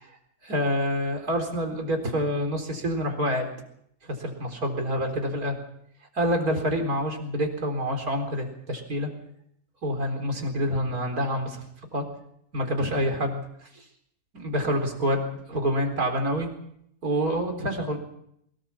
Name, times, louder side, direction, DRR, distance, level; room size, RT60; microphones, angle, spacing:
voice 1, 0.4-3.5 4.0-5.6 6.1-9.1 9.8-11.6 11.9-12.0 12.5-13.4 14.4-16.5 17.0-18.0, equal, 75° right, 4 dB, 4.5 m, -27 dB
23.5 x 22.0 x 5.7 m, 0.72 s
omnidirectional pair, 1.6 m